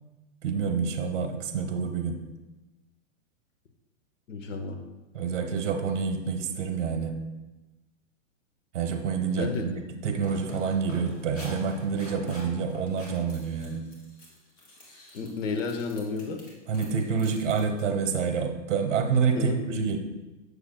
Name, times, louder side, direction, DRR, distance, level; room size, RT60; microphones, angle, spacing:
voice 1, 0.4-2.2 5.1-7.2 8.7-13.8 16.7-20.0, right 6 dB, 70° right, 5 dB, 0.9 m, -28 dB
voice 2, 4.3-4.8 9.4-9.7 15.1-16.4 19.3-19.8, left 4 dB, 80° left, 4 dB, 1.0 m, -32 dB
sound 1, 9.9-17.9, left 2 dB, 25° left, 1.6 m, -45 dB
7.0 x 6.6 x 2.3 m, 1.1 s
hypercardioid pair, 150°, 38 cm